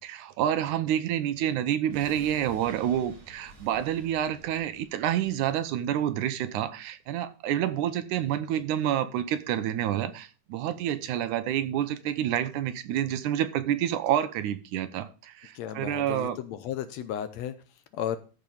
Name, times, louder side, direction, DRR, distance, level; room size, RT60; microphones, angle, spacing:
voice 1, 0.0-16.4, right 11 dB, 85° right, 2.3 m, -28 dB
explosion bright, 1.9-6.9 7.2-7.3, right 2 dB, 60° right, 4.8 m, -52 dB
voice 2, 15.5-18.2, left 10 dB, 75° left, 1.7 m, -34 dB
14.0 x 4.9 x 5.5 m
omnidirectional pair, 3.5 m